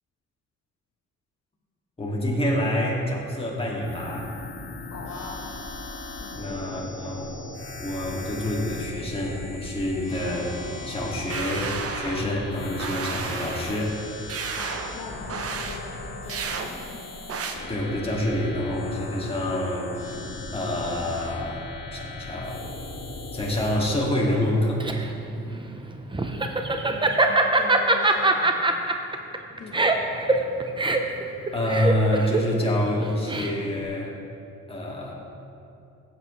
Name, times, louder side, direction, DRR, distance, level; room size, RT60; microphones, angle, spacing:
voice 1, 2.0-4.4 6.3-7.4 7.8-10.6 10.8-14.0 17.7-20.2 20.5-22.7 23.3-24.9 29.8-29.9 31.5-34.2 34.7-35.1, left 1 dB, 20° left, -3 dB, 2.2 m, -27 dB
sound 1, 3.8-23.8, left 3 dB, 40° left, 1.7 m, -38 dB
voice 2, 4.8-5.5 6.2-6.6 14.6-17.0 26.9-28.8 29.6-29.9, left 4 dB, 55° left, -2 dB, 1.4 m, -41 dB
sound 2, 11.3-12.4 12.8-13.8 14.3-14.9 15.3-15.8 16.3-16.7 17.3-17.5, right 5 dB, 50° right, 0.9 m, -32 dB
Laughter, 24.4-33.8, right 2 dB, 15° right, 0.8 m, -23 dB
15.5 x 8.0 x 3.2 m, 2.6 s
cardioid pair, 90°, 30 cm